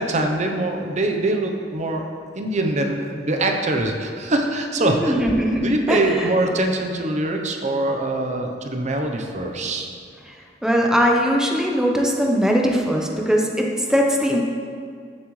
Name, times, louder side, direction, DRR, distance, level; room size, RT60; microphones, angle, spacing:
voice 1, 0.0-2.1 2.3-5.2 5.6-9.9, right 2 dB, 40° right, 3 dB, 0.8 m, -23 dB
voice 2, 4.8-6.3 10.6-14.4, equal, 5° right, -1 dB, 0.8 m, -20 dB
15.0 x 7.3 x 3.2 m, 2.2 s
head